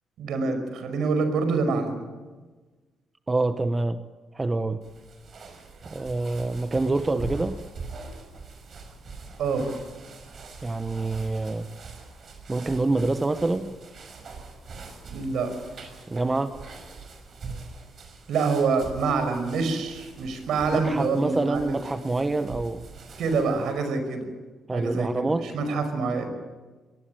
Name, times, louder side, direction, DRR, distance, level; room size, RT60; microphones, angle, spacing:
voice 1, 0.2-2.1 9.4-9.7 15.1-15.5 18.3-21.8 23.2-24.3 24.7-26.3, right 4 dB, 75° right, 8 dB, 5.2 m, -26 dB
voice 2, 3.3-4.0 4.3-4.8 5.9-7.6 10.6-11.7 12.5-13.8 16.1-16.6 20.7-22.9 24.7-25.5, right 2 dB, 20° right, 10 dB, 1.1 m, -26 dB
sound 1, 4.8-23.8, right 4 dB, 50° right, 5.6 m, -43 dB
23.0 x 19.5 x 9.0 m, 1.3 s
cardioid pair, 90°, 0 cm